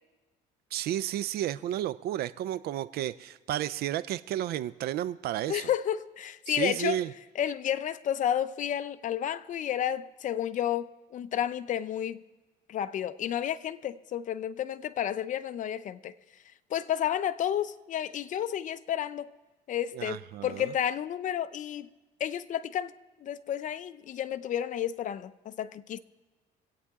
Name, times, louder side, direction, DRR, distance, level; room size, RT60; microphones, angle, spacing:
voice 1, 0.7-5.7 6.5-7.1 19.9-20.7, right 12 dB, 70° right, 0.4 m, -32 dB
voice 2, 5.5-7.0 7.4-12.2 12.7-16.1 16.7-19.3 19.7-21.9 22.2-22.9 23.2-26.0, left 10 dB, 50° left, 0.6 m, -31 dB
25.5 x 8.5 x 3.6 m
cardioid pair, 110°, 17 cm